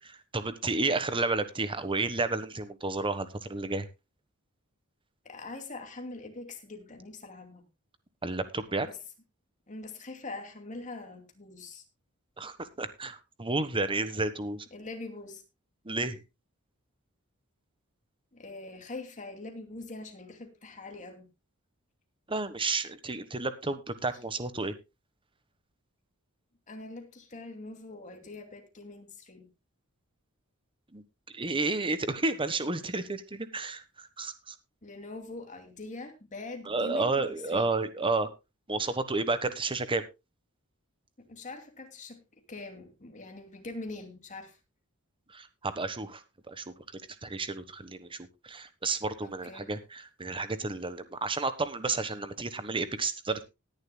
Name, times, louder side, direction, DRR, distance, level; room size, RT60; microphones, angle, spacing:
voice 1, 0.1-3.9 8.2-8.9 12.4-14.7 15.8-16.2 22.3-24.7 30.9-31.0 31.3-34.5 36.7-38.3 38.7-40.0 45.3-48.2 48.4-53.4, right 3 dB, 25° right, 1.2 m, -31 dB
voice 2, 5.2-7.7 8.9-9.0 9.7-11.8 14.7-15.4 18.3-21.3 26.7-29.5 34.8-37.7 41.2-42.2 42.5-44.6 49.2-49.7, left 2 dB, 35° left, 2.5 m, -43 dB
19.5 x 10.5 x 2.2 m
head